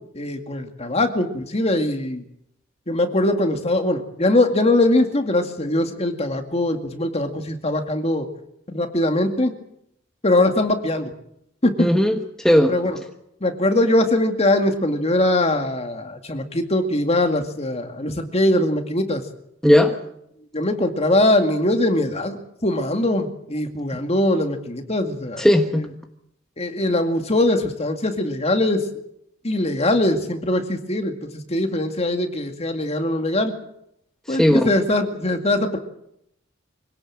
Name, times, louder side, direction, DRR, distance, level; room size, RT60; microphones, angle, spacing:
voice 1, 0.1-2.2 2.9-8.3 8.7-9.5 10.2-11.1 11.6-11.9 12.7-13.0 13.4-19.2 20.5-25.5 26.6-28.9 29.4-33.5 34.3-35.8, left 1 dB, 30° left, 5 dB, 2.2 m, -21 dB
voice 2, 11.8-12.8 19.6-20.0 25.4-25.9 34.3-34.7, equal, 5° left, 4 dB, 1.2 m, -17 dB
25.0 x 17.5 x 7.6 m, 0.77 s
head